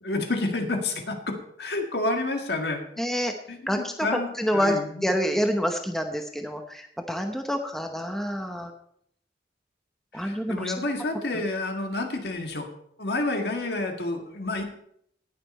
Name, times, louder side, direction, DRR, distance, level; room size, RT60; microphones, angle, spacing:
voice 1, 0.0-2.8 3.5-5.4 10.1-12.7 13.0-14.6, left 2 dB, 65° left, 4 dB, 1.8 m, -29 dB
voice 2, 3.0-3.3 3.7-3.9 4.4-8.7 10.1-10.7, equal, ahead, 4 dB, 0.8 m, -27 dB
18.0 x 6.8 x 4.2 m, 0.69 s
head